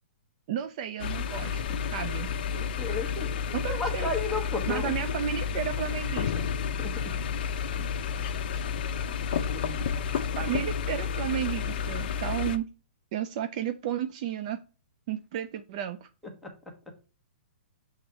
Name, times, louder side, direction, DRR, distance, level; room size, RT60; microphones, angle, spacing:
voice 1, 0.5-2.3 3.5-4.1 4.7-6.5 9.9-10.1 10.3-12.7 13.1-14.6 15.1-16.1, right 10 dB, 35° right, 10 dB, 0.4 m, -33 dB
sound 1, 1.0-12.6, left 7 dB, 50° left, 0.5 m, -31 dB
voice 2, 2.5-3.3 3.7-4.9 6.8-7.1 7.8-7.9 9.3-10.0 16.4-16.5, left 3 dB, ahead, 0 dB, 1.1 m, -34 dB
7.0 x 3.5 x 4.1 m, 0.34 s
hypercardioid pair, 160°, 6 cm